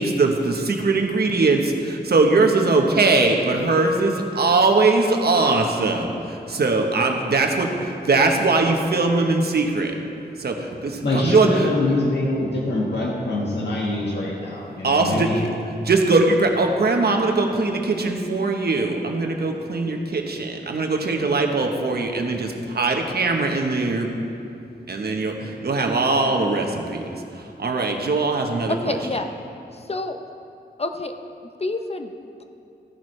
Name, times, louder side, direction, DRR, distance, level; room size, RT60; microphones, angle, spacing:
voice 1, 0.0-7.7 8.0-9.9 10.4-11.7 14.8-15.5 15.8-24.1 24.9-27.0 27.3-29.0, right 3 dB, 65° right, 3 dB, 1.1 m, -21 dB
voice 2, 11.0-15.5, left 2 dB, 80° left, -4 dB, 1.6 m, -24 dB
voice 3, 28.7-29.3 29.7-30.2 30.8-31.1 31.6-32.1, left 2 dB, 35° left, 6 dB, 0.7 m, -27 dB
14.5 x 11.0 x 3.3 m, 2.6 s
wide cardioid pair, 110°, 18 cm